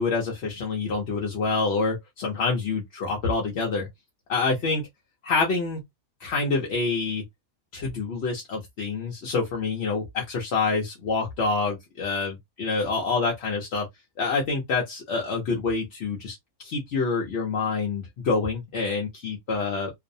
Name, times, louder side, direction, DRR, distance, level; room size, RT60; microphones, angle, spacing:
voice 1, 0.0-3.9 4.3-4.8 5.2-5.8 6.2-7.2 7.7-12.3 12.6-13.9 14.2-19.9, left 4 dB, 60° left, 0.8 m, -27 dB
2.6 x 2.0 x 2.5 m
omnidirectional pair, 1.4 m